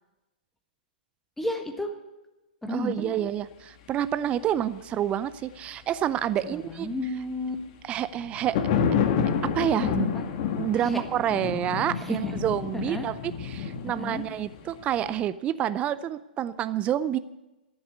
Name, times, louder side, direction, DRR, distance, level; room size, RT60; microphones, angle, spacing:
voice 1, 1.4-1.9 2.6-3.1 6.5-7.5 10.1-10.2 10.8-11.0 12.0-12.4 12.7-13.1 13.8-14.2, left 1 dB, 5° left, 5 dB, 1.6 m, -32 dB
voice 2, 2.7-6.9 7.8-8.6 9.4-10.1 10.6-17.2, right 11 dB, 25° right, 15 dB, 0.5 m, -28 dB
sound 1, 8.2-15.3, left 7 dB, 45° left, 1.4 m, -29 dB
14.0 x 7.9 x 9.5 m, 1.0 s
figure-of-eight pair, 115°, 5 cm